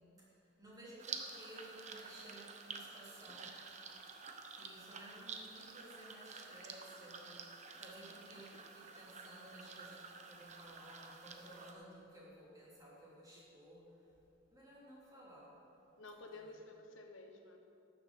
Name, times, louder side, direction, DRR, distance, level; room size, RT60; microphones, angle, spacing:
voice 1, 0.0-3.6 4.5-7.4 7.7-14.1 14.5-15.6 16.3-16.6, right 1 dB, 20° right, -7 dB, 3.4 m, -56 dB
sound 1, 1.0-11.7, right 5 dB, 35° right, 0.9 m, -50 dB
voice 2, 16.0-17.6, left 2 dB, 80° left, 4 dB, 1.1 m, -53 dB
12.0 x 7.1 x 8.2 m, 2.8 s
head